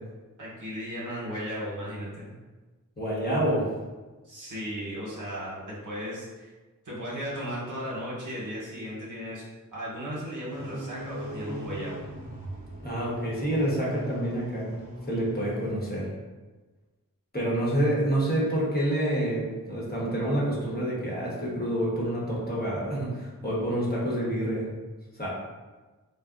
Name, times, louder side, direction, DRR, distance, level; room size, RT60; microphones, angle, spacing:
voice 1, 0.4-2.3 4.2-6.5 6.8-9.4 9.7-12.0, equal, 60° right, -6 dB, 1.0 m, -36 dB
voice 2, 3.0-3.7 12.8-14.8 15.1-16.1 17.3-24.6 25.2-25.3, right 1 dB, 25° left, -6 dB, 1.1 m, -28 dB
sound 1, 10.5-15.7, right 1 dB, 25° right, 0.9 m, -39 dB
3.3 x 2.2 x 2.5 m, 1.2 s
cardioid pair, 45°, 34 cm